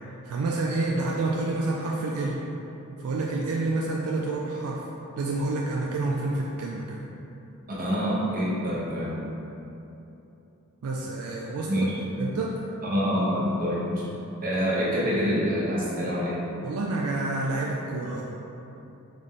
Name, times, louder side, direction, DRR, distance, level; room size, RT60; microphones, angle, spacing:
voice 1, 0.3-2.4 3.0-4.8 5.2-7.1 9.2-9.3 10.8-11.9 12.2-12.7 16.6-18.2, right 2 dB, 75° right, -2 dB, 0.4 m, -28 dB
voice 2, 7.8-9.1 11.6-12.0 12.8-14.0 14.4-16.4, equal, 40° right, -7 dB, 1.0 m, -26 dB
4.0 x 3.2 x 3.6 m, 3.0 s
head